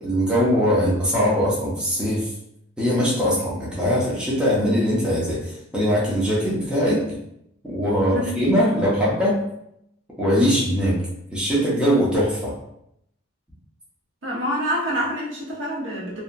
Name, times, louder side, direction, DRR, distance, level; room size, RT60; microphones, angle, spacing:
voice 1, 0.0-2.3 2.8-7.2 7.6-9.4 10.2-11.0 11.3-12.6, equal, 5° right, -7 dB, 0.6 m, -21 dB
voice 2, 8.0-8.3 14.2-16.2, equal, 65° right, -5 dB, 0.9 m, -27 dB
2.7 x 2.2 x 2.5 m, 0.76 s
head